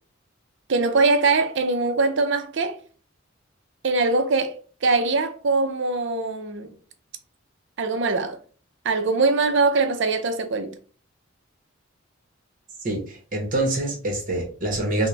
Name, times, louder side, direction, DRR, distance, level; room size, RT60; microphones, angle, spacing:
voice 1, 0.7-2.8 3.8-6.7 7.8-8.4 8.8-10.8, right 3 dB, 65° right, 0.6 m, -22 dB
voice 2, 12.8-15.1, right 2 dB, 45° right, 1.1 m, -25 dB
4.2 x 2.2 x 3.3 m
head